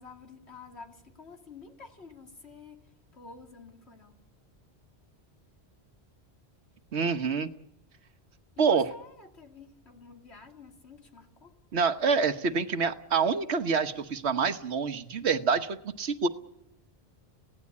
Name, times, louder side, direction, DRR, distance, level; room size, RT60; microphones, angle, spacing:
voice 1, 0.0-2.8 3.1-4.2 8.6-11.6, left 4 dB, 80° left, 3 dB, 2.9 m, -50 dB
voice 2, 6.9-7.5 8.6-8.9 11.7-16.3, right 5 dB, 85° right, 10 dB, 1.4 m, -27 dB
26.0 x 17.0 x 8.5 m, 0.81 s
omnidirectional pair, 1.1 m